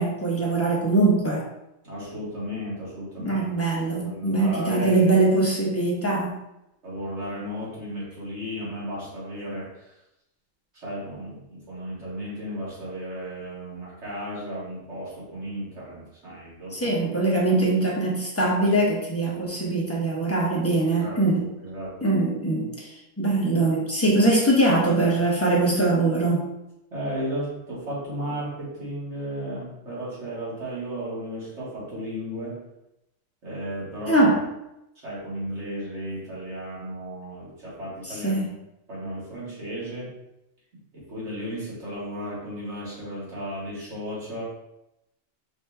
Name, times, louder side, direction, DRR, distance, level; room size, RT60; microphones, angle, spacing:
voice 1, 0.0-1.4 3.2-6.4 16.7-21.4 22.0-26.5 34.1-34.4 38.2-38.5, right 2 dB, 10° left, -4 dB, 0.9 m, -22 dB
voice 2, 1.8-3.5 4.0-5.2 6.8-10.0 10.7-17.0 21.0-22.0 26.9-32.6 33.4-34.3 35.0-38.5 38.9-40.1 40.9-44.4, equal, 55° right, -8 dB, 2.3 m, -34 dB
5.1 x 3.1 x 3.4 m, 0.89 s
omnidirectional pair, 1.4 m